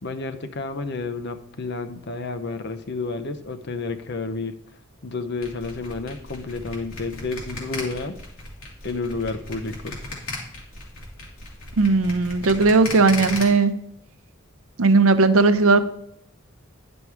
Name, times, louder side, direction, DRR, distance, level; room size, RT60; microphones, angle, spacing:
voice 1, 0.0-4.6 5.0-8.2 8.8-10.0, left 3 dB, 55° left, 8 dB, 0.7 m, -30 dB
sound 1, 5.4-13.4, left 3 dB, 75° left, 2.6 m, -35 dB
voice 2, 11.8-13.7 14.8-15.8, right 3 dB, 75° right, 11 dB, 0.7 m, -17 dB
9.9 x 5.3 x 4.7 m, 0.70 s
head